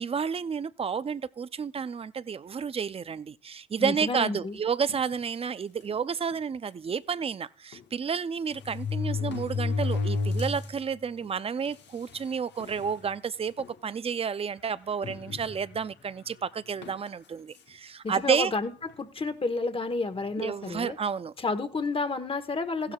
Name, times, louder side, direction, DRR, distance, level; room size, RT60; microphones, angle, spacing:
voice 1, 0.0-18.5 20.4-21.3 22.8-22.9, right 6 dB, 30° right, 0.5 m, -31 dB
voice 2, 3.8-4.6 18.0-21.0 21.4-22.9, left 3 dB, 25° left, 1.2 m, -31 dB
sound 1, 4.9-5.2 5.9-6.0 6.3-6.4 7.7-7.8 8.5-10.8 11.2-11.3 12.1-12.2 12.6-13.0 13.6-13.7 15.0-15.8 16.8-17.1, left 4 dB, 60° left, 1.0 m, -31 dB
15.5 x 12.5 x 2.3 m
cardioid pair, 90°, 20 cm